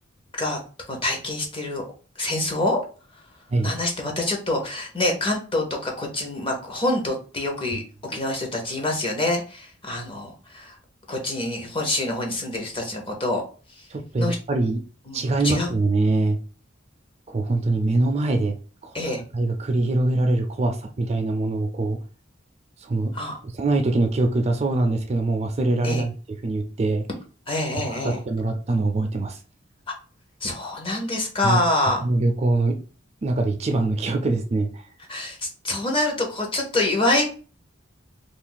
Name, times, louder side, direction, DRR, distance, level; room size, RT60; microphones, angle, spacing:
voice 1, 0.9-1.8 2.2-2.8 3.6-10.7 11.1-13.4 14.2-14.4 15.1-15.7 18.9-19.2 23.1-23.4 25.8-26.0 27.5-28.2 30.4-32.0 35.1-37.3, left 2 dB, 25° left, 1 dB, 0.8 m, -26 dB
voice 2, 13.9-14.8 15.1-16.4 17.3-18.6 18.8-22.0 22.8-23.1 23.5-26.1 26.4-27.1 27.8-29.4 31.4-31.6 32.0-32.7 33.2-34.8, right 2 dB, 35° right, 5 dB, 0.4 m, -23 dB
2.5 x 2.4 x 3.8 m, 0.37 s
head